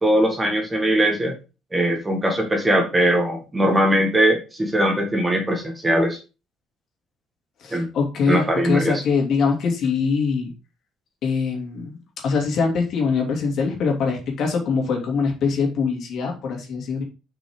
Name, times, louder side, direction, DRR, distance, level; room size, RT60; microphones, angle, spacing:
voice 1, 0.0-1.3 1.7-6.2 7.7-7.9 8.3-8.9, right 1 dB, 10° right, 2 dB, 1.7 m, -20 dB
voice 2, 7.6-10.5 11.2-12.0 12.2-17.0, left 5 dB, 50° left, 1 dB, 2.9 m, -23 dB
7.8 x 6.0 x 3.8 m, 0.31 s
cardioid pair, 165°, 0 cm